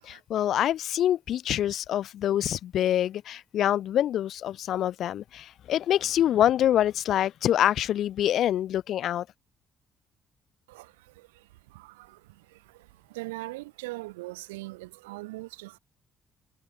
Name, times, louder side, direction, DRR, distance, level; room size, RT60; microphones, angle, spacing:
voice 1, 0.0-9.2, left 11 dB, 60° left, 1.6 m, -25 dB
voice 2, 13.2-15.8, right 21 dB, 75° right, 2.1 m, -39 dB
figure-of-eight pair, 40°, 0 cm